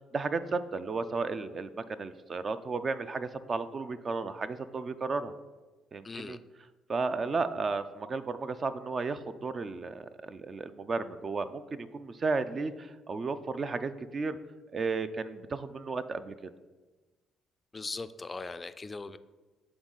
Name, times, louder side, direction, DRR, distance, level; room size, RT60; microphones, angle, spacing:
voice 1, 0.1-5.3 5.9-6.4 6.9-14.4 14.7-16.5, right 4 dB, 40° right, 12 dB, 0.4 m, -33 dB
voice 2, 6.0-6.4 17.7-19.2, left 3 dB, 25° left, 12 dB, 0.3 m, -39 dB
7.9 x 3.7 x 3.9 m, 1.2 s
supercardioid pair, 70°, 0 cm